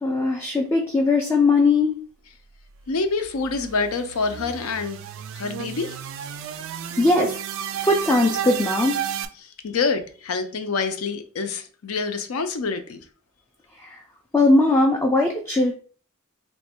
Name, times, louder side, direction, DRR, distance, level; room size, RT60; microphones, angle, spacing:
voice 1, 0.0-1.9 7.0-7.4 7.8-9.0 13.8-14.0 14.3-15.7, left 2 dB, 10° left, 0.3 m, -19 dB
voice 2, 2.9-5.0 5.3-6.0 9.4-13.0, left 4 dB, 70° left, 0.5 m, -26 dB
sound 1, 2.9-9.3, right 8 dB, 60° right, 0.3 m, -32 dB
3.1 x 2.2 x 4.2 m
head